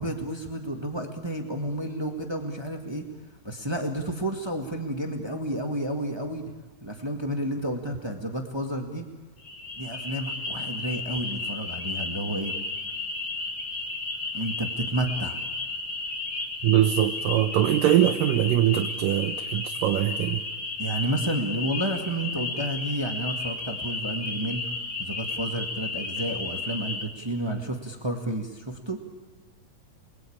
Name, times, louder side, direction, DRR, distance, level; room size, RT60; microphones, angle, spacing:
voice 1, 0.0-3.0 3.4-6.4 6.8-9.1 9.8-12.5 14.3-15.4 20.8-29.0, right 1 dB, 20° right, 3 dB, 0.7 m, -31 dB
sound 1, 9.4-27.0, left 3 dB, 30° left, 2.3 m, -33 dB
voice 2, 16.6-20.4, right 12 dB, 85° right, 7 dB, 2.6 m, -22 dB
29.0 x 22.0 x 8.8 m, 1.4 s
omnidirectional pair, 3.8 m